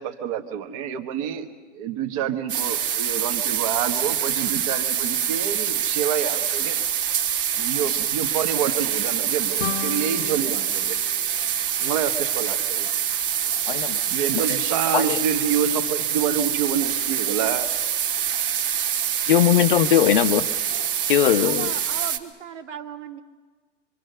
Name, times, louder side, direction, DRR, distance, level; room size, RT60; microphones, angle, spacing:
voice 1, 0.0-6.8 7.6-11.0 11.8-12.9 14.1-17.7, right 8 dB, 30° right, 1.3 m, -27 dB
sound 1, 2.5-22.2, right 9 dB, 45° right, 1.4 m, -25 dB
sound 2, 9.6-12.3, left 9 dB, 75° left, 1.0 m, -35 dB
voice 2, 13.7-14.0 14.9-15.2 19.3-20.5 21.1-21.7, left 10 dB, 45° left, 0.9 m, -19 dB
voice 3, 21.4-23.2, right 8 dB, 90° right, 2.2 m, -37 dB
25.5 x 24.0 x 6.7 m
hypercardioid pair, 165°, 36 cm